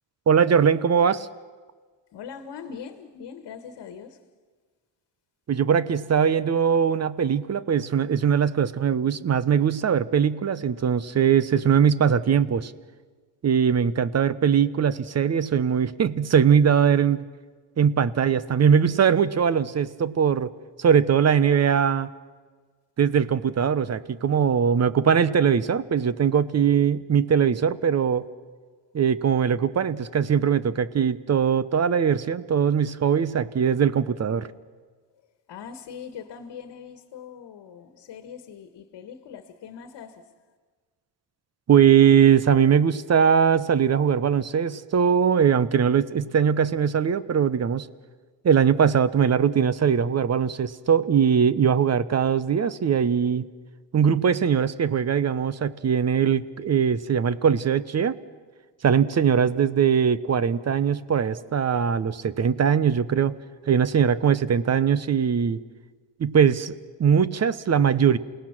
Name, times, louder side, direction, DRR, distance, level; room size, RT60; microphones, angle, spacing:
voice 1, 0.3-1.3 5.5-12.7 13.4-17.2 17.8-20.5 20.8-22.1 23.0-28.3 28.9-34.5 41.7-47.9 48.4-53.5 53.9-58.2 58.8-63.4 63.7-65.6 66.2-66.7 67.0-68.2, right 7 dB, 35° right, 0.9 m, -21 dB
voice 2, 2.1-4.2 35.5-40.3, left 7 dB, 65° left, 1.6 m, -41 dB
28.5 x 18.5 x 6.0 m
cardioid pair, 85°, 44 cm